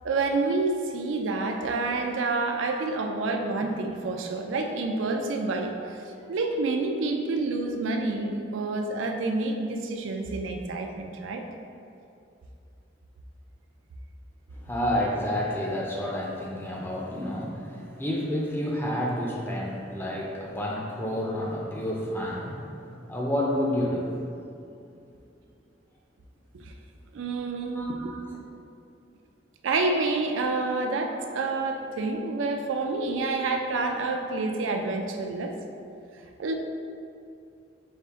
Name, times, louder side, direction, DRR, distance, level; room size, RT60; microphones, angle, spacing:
voice 1, 0.0-11.5 26.5-26.7 27.1-28.1 29.6-35.6 36.4-36.5, right 3 dB, 85° right, 4 dB, 0.4 m, -28 dB
voice 2, 14.5-24.5 27.8-28.4, left 1 dB, 10° left, -2 dB, 0.4 m, -30 dB
5.2 x 2.5 x 3.6 m, 2.6 s
head